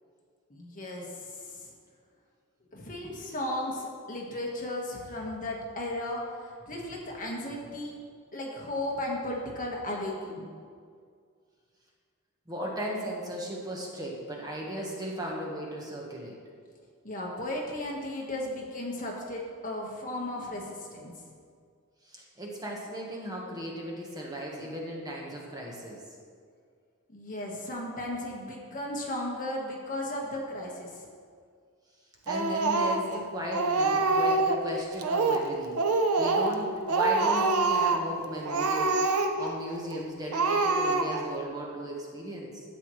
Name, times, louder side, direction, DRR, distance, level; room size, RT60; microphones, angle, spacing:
voice 1, 0.5-1.7 2.7-7.9 8.3-10.5 17.0-21.1 27.1-31.1, left 1 dB, 35° left, -2 dB, 1.5 m, -35 dB
voice 2, 12.5-16.4 22.0-26.0 32.2-35.8 36.2-42.6, right 1 dB, 15° right, -3 dB, 1.3 m, -36 dB
Speech, 32.3-33.2 33.5-34.6 35.0-35.5 35.8-36.6 36.9-38.1 38.5-39.5 39.9-40.0 40.3-41.3, right 3 dB, 75° right, 0.7 m, -25 dB
12.0 x 8.3 x 3.2 m, 2.1 s
head